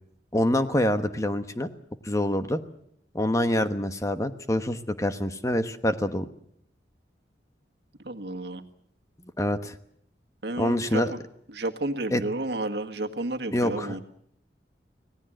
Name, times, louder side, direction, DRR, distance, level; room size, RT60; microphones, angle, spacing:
voice 1, 0.3-1.7 2.0-2.6 3.1-6.2 9.4-9.7 10.6-11.1 12.1-12.2 13.5-14.0, left 1 dB, 20° left, 8 dB, 1.1 m, -26 dB
voice 2, 8.1-8.6 10.4-11.2 11.5-14.0, right 2 dB, 70° right, 5 dB, 1.8 m, -31 dB
25.5 x 18.0 x 7.8 m, 0.69 s
head